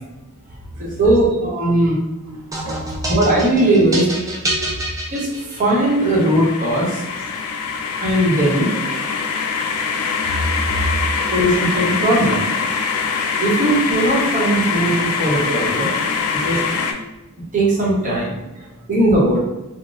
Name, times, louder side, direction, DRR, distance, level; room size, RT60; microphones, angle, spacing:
voice 1, 0.8-2.0 3.1-4.1 5.1-7.0 7.9-8.7 11.3-12.4 13.1-15.9 16.3-16.6 17.5-18.3 18.9-19.5, right 1 dB, 35° right, -4 dB, 0.9 m, -18 dB
voice 2, 2.2-3.0 8.9-9.1 15.4-16.3 16.9-17.0 18.6-18.7, right 2 dB, 85° right, -2 dB, 0.6 m, -33 dB
sound 1, 2.5-5.9, right 1 dB, 15° right, 0.4 m, -26 dB
sound 2, 5.7-16.9, left 5 dB, 70° left, 0.3 m, -23 dB
3.8 x 2.0 x 2.4 m, 1.0 s
head